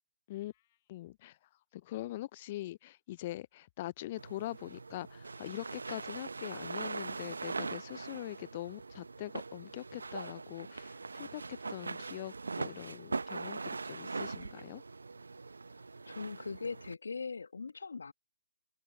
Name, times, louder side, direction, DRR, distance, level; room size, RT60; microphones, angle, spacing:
voice 1, 0.9-1.4 1.7-13.6 13.8-14.8, left 15 dB, 35° left, 0.3 m, -43 dB
sound 1, 4.2-16.9, right 4 dB, 75° right, 0.7 m, -41 dB
voice 2, 16.1-18.1, left 4 dB, 70° left, 1.2 m, -40 dB
figure-of-eight pair, 140°, 0 cm